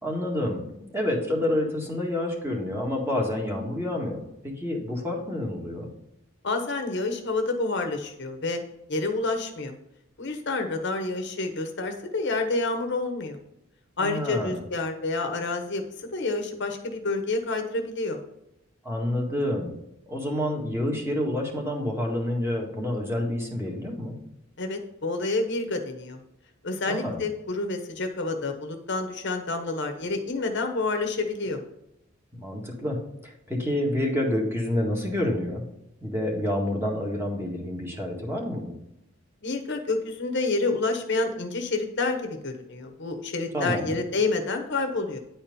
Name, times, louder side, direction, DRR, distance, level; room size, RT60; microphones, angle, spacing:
voice 1, 0.0-5.9 14.0-14.6 18.8-19.7 20.1-24.2 26.9-27.2 32.3-35.6 36.0-38.7 43.5-44.0, left 1 dB, 10° right, -1 dB, 1.7 m, -28 dB
voice 2, 6.4-8.6 8.9-9.7 10.2-13.4 14.0-18.2 24.6-26.2 26.6-31.6 39.4-45.2, left 3 dB, 55° left, 5 dB, 1.1 m, -28 dB
9.8 x 4.4 x 5.4 m, 0.82 s
head